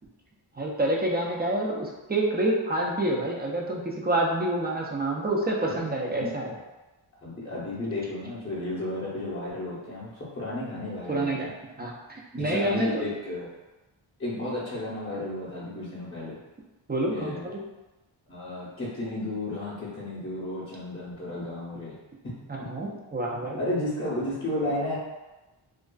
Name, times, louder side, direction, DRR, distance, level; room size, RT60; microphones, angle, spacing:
voice 1, 0.6-6.5 11.1-11.5 11.8-13.0 16.9-17.6 22.7-23.6, right 1 dB, 20° right, -2 dB, 0.4 m, -27 dB
voice 2, 7.2-11.3 12.4-13.5 14.2-16.4 17.1-17.5 18.3-22.0 23.6-25.0, left 1 dB, 25° left, -11 dB, 0.7 m, -33 dB
2.5 x 2.3 x 2.2 m, 1.1 s
wide cardioid pair, 60°, 50 cm